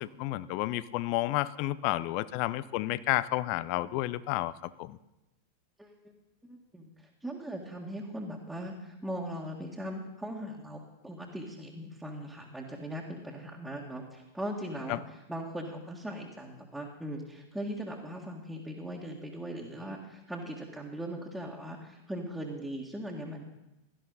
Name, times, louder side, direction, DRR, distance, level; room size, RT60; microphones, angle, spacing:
voice 1, 0.0-5.0 14.9-15.0, left 16 dB, 45° left, 17 dB, 0.5 m, -31 dB
voice 2, 6.4-23.4, equal, 5° right, -3 dB, 1.9 m, -39 dB
17.0 x 12.5 x 4.1 m, 0.95 s
figure-of-eight pair, 90°, 0 cm